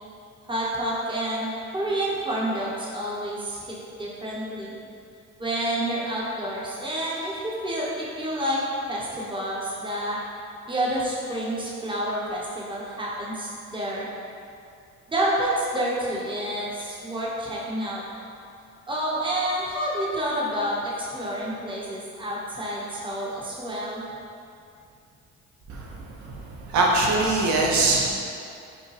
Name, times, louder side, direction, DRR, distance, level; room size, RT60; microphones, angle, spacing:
voice 1, 0.5-4.7 5.4-8.6 8.9-10.2 10.7-14.1 15.1-18.0 18.9-24.0, right 1 dB, 15° right, -6 dB, 0.9 m, -29 dB
voice 2, 26.7-28.1, right 2 dB, 70° right, -2 dB, 0.8 m, -21 dB
5.2 x 2.2 x 3.2 m, 2.5 s
cardioid pair, 90°, 30 cm